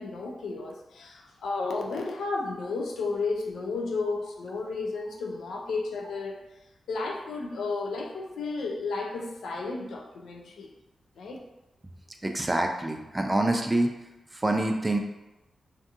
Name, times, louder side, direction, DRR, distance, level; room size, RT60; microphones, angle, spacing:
voice 1, 0.0-6.4 6.9-10.7 11.2-11.4, left 3 dB, 85° left, 1 dB, 0.4 m, -33 dB
voice 2, 12.2-13.9 14.3-15.0, right 1 dB, 20° right, 3 dB, 0.3 m, -26 dB
2.5 x 2.3 x 2.8 m, 0.99 s
cardioid pair, 85°, 0 cm